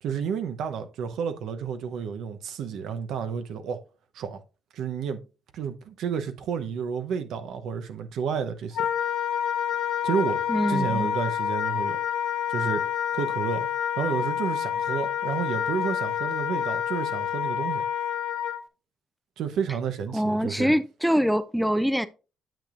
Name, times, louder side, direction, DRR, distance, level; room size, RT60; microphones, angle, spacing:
voice 1, 0.0-3.8 4.1-4.4 4.7-5.2 5.5-8.9 10.0-10.4 10.7-12.0 12.5-12.8 13.1-13.7 14.0-17.8 19.4-20.7, right 7 dB, 80° right, 0.8 m, -31 dB
Wind instrument woodwind instrument, 8.7-18.6, left 9 dB, 80° left, 0.8 m, -28 dB
voice 2, 10.5-11.1 20.1-22.1, equal, ahead, 0.4 m, -24 dB
9.1 x 6.9 x 2.5 m
cardioid pair, 90°, 0 cm